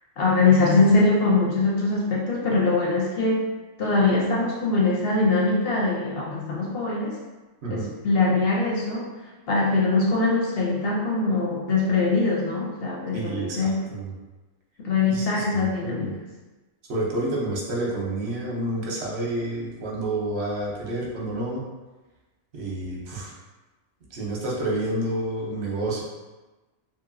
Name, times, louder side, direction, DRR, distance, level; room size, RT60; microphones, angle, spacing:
voice 1, 0.2-3.4 3.8-7.2 7.7-9.1 9.5-13.8 14.8-16.2, left 3 dB, 65° left, -4 dB, 0.6 m, -22 dB
voice 2, 13.1-14.1 15.1-16.1 16.9-21.6 22.5-23.3 24.1-26.0, right 1 dB, 60° right, -3 dB, 0.9 m, -29 dB
2.8 x 2.6 x 2.5 m, 1.2 s
omnidirectional pair, 1.4 m